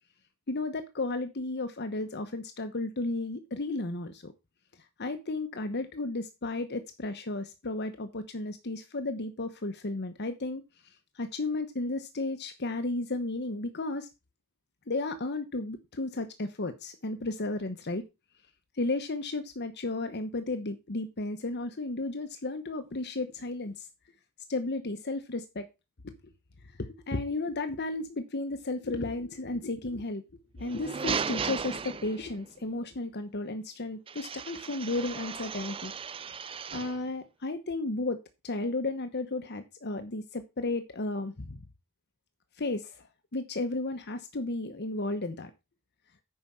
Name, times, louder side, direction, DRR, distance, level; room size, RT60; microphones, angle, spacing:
voice 1, 0.5-4.3 5.0-14.1 14.9-18.0 18.7-23.9 24.5-25.7 26.0-26.1 26.6-35.9 36.7-41.6 42.6-45.5, left 2 dB, 50° left, 8 dB, 1.0 m, -34 dB
sound 1, 30.6-32.5 34.1-37.1, right 6 dB, 25° right, 0.4 m, -36 dB
9.3 x 5.6 x 6.2 m, 0.25 s
head